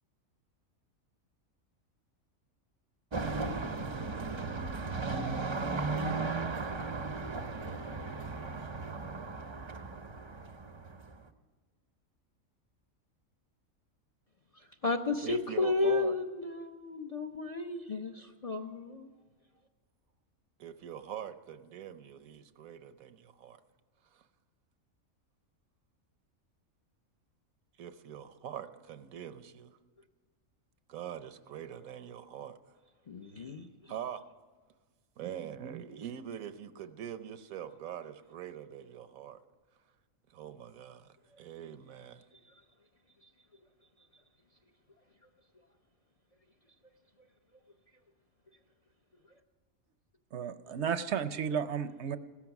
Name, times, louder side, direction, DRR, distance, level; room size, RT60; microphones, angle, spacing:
sound 1, 3.1-11.2, right 3 dB, 30° right, 0.5 m, -36 dB
voice 1, 14.5-19.1 33.1-33.9 42.3-42.6 43.2-43.3 44.0-44.1, left 3 dB, 40° left, 6 dB, 0.5 m, -33 dB
voice 2, 15.2-16.2 20.6-23.6 24.1-24.3 27.8-29.8 30.9-32.6 33.9-34.2 35.2-39.4 40.3-42.2, right 9 dB, 85° right, 11 dB, 1.2 m, -43 dB
voice 3, 50.3-52.2, right 7 dB, 60° right, 12 dB, 0.8 m, -33 dB
16.5 x 13.5 x 5.9 m, 1.4 s
omnidirectional pair, 1.4 m